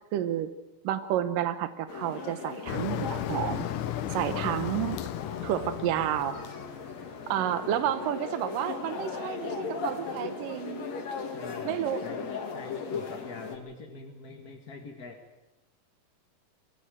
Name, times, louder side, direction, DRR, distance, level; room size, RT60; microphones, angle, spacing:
voice 1, 0.1-0.5 0.8-3.7 4.1-5.0 5.4-6.4 7.3-10.9 11.6-12.1, right 11 dB, 80° right, 11 dB, 2.7 m, -30 dB
sound 1, 1.9-13.6, left 5 dB, 55° left, 3.4 m, -38 dB
Motor vehicle (road), 2.7-7.6, left 11 dB, 75° left, 2.3 m, -35 dB
voice 2, 5.5-6.1 7.3-7.8 11.3-12.2 12.5-15.2, left 4 dB, 40° left, 3 dB, 1.5 m, -45 dB
23.0 x 16.0 x 9.1 m, 1.0 s
omnidirectional pair, 3.8 m